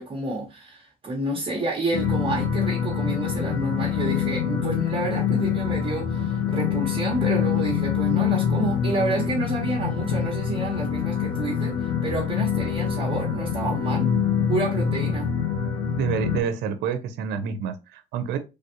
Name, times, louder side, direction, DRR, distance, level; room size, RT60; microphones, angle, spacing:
voice 1, 0.0-14.1 14.5-15.3, right 2 dB, 30° right, 0.9 m, -29 dB
sound 1, 1.9-16.4, left 8 dB, 85° left, 1.1 m, -25 dB
voice 2, 16.0-18.4, right 7 dB, 80° right, 0.6 m, -28 dB
3.3 x 2.3 x 2.8 m
cardioid pair, 110°, 17 cm